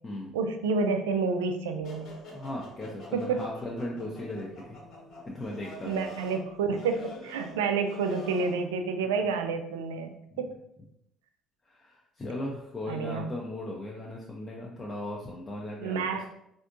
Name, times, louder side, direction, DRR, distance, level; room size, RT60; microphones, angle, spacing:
voice 1, 0.3-2.2 3.1-3.4 5.8-10.5 12.9-13.3 15.8-16.3, right 4 dB, 75° right, 7 dB, 0.3 m, -29 dB
sound 1, 1.8-8.6, left 1 dB, 60° left, 1.3 m, -46 dB
voice 2, 2.3-4.8 5.3-6.1 10.3-10.4 11.7-16.3, left 1 dB, 30° left, -2 dB, 0.6 m, -37 dB
4.2 x 2.6 x 2.5 m, 0.78 s
figure-of-eight pair, 50°, 0 cm